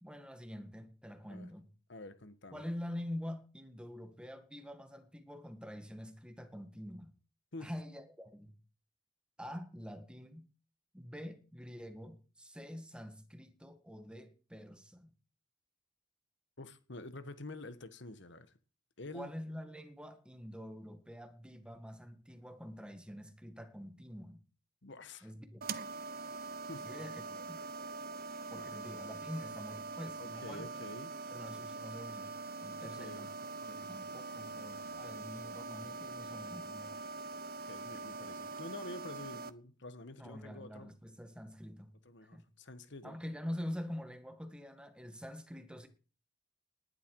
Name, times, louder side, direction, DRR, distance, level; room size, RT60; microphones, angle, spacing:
voice 1, 0.0-1.7 2.5-7.1 7.6-8.6 9.4-10.5 10.9-15.1 19.1-24.4 25.2-25.7 26.8-27.6 28.5-30.7 31.3-32.3 32.6-33.3 33.6-36.9 40.2-42.0 42.2-42.5 43.0-45.9, equal, 5° right, 1.7 m, -46 dB
voice 2, 1.9-2.6 7.5-7.7 16.6-18.5 19.0-19.3 24.8-25.3 26.7-26.9 28.4-28.7 30.2-31.1 32.8-33.3 37.7-40.9 42.0-43.2, left 2 dB, 60° left, 1.5 m, -48 dB
sound 1, 25.6-39.5, right 4 dB, 50° right, 1.0 m, -43 dB
19.0 x 11.5 x 4.8 m
head